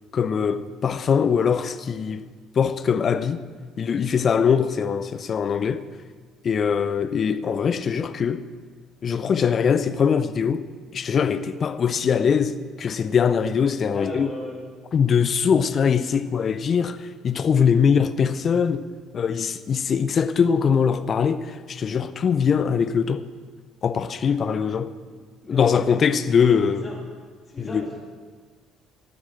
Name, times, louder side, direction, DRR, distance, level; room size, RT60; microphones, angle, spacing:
voice 1, 0.1-2.3 2.6-3.4 3.8-5.8 6.4-8.4 9.0-10.6 10.9-14.3 14.9-17.0 17.2-18.8 19.1-23.2 23.8-24.9 25.5-26.8 27.6-27.9, left 6 dB, 40° left, 0.7 m, -22 dB
voice 2, 13.9-14.6 25.1-25.2 25.4-25.7 26.0-26.1 26.6-27.0 27.5-28.0, left 1 dB, 25° left, 3.1 m, -36 dB
12.0 x 8.8 x 7.7 m
figure-of-eight pair, 50°, 0 cm